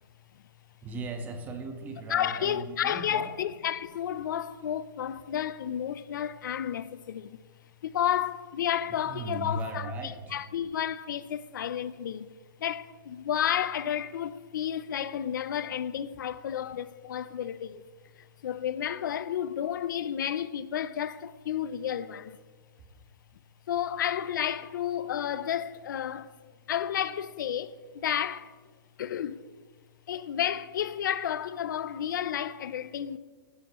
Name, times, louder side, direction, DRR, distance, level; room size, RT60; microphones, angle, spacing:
voice 1, 0.8-3.3 9.1-10.2, right 2 dB, 15° right, 1.2 m, -37 dB
voice 2, 2.1-7.4 7.8-9.9 10.3-12.3 12.6-17.8 18.2-22.4 23.7-26.3 26.7-28.6 29.0-29.5 30.1-33.2, left 10 dB, 65° left, 0.6 m, -31 dB
15.0 x 12.0 x 3.1 m
hypercardioid pair, 160°, 11 cm